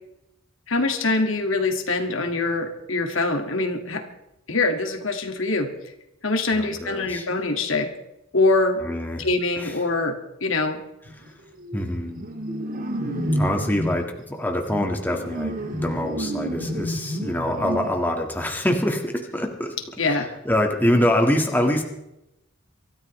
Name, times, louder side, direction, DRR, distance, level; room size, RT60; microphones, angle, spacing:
voice 1, 0.7-4.0 4.5-5.7 6.2-7.9 8.3-8.8 9.2-10.8 20.0-20.3, left 3 dB, 70° left, 5 dB, 2.0 m, -24 dB
voice 2, 6.5-7.3 8.8-9.2 9.6-9.8 11.1-11.3 11.7-12.2 13.3-19.8 20.1-21.8, left 1 dB, 10° left, 2 dB, 1.7 m, -25 dB
sound 1, 11.1-11.3 11.6-14.0 14.7-17.9, equal, 45° right, 1.9 m, -29 dB
24.5 x 13.5 x 3.2 m, 0.87 s
head